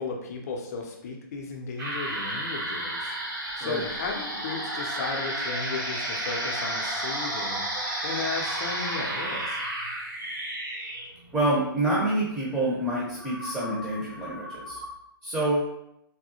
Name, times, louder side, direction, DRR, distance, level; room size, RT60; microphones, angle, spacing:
voice 1, 0.0-3.1 3.6-9.6, left 4 dB, 40° left, 1 dB, 0.5 m, -35 dB
sound 1, 1.8-14.9, right 1 dB, 55° right, 1.2 m, -33 dB
voice 2, 11.3-14.8 15.2-15.6, right 1 dB, 10° right, -7 dB, 0.7 m, -27 dB
3.5 x 2.2 x 2.7 m, 0.79 s
figure-of-eight pair, 120°, 12 cm